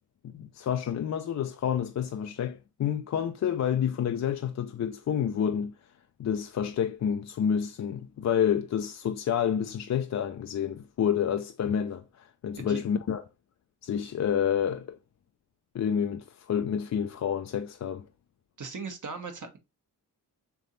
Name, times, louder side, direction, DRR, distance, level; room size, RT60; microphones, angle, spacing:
voice 1, 0.2-5.7 6.2-13.2 13.8-15.0 15.7-18.0, left 8 dB, 45° left, 0.4 m, -29 dB
voice 2, 18.6-19.6, right 5 dB, 45° right, 1.1 m, -38 dB
3.4 x 2.8 x 3.9 m
cardioid pair, 50°, 41 cm